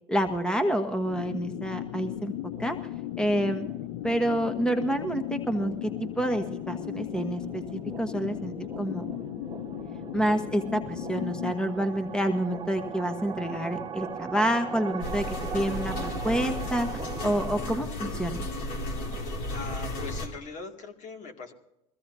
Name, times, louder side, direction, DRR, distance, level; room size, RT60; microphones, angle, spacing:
voice 1, 0.1-2.3 2.6-2.8 3.2-3.7 4.0-9.1 10.1-15.3 15.5-16.9 17.2-18.5, right 1 dB, 5° left, 7 dB, 1.2 m, -28 dB
sound 1, 1.0-11.5, left 17 dB, 85° left, 0.4 m, -36 dB
sound 2, 2.0-17.6, right 5 dB, 25° right, 1.3 m, -40 dB
sound 3, 15.0-20.3, left 1 dB, 65° left, 3.1 m, -34 dB
voice 2, 19.1-21.5, left 3 dB, 50° left, 3 dB, 2.3 m, -41 dB
22.0 x 16.0 x 2.7 m, 0.87 s
supercardioid pair, 90°, 16 cm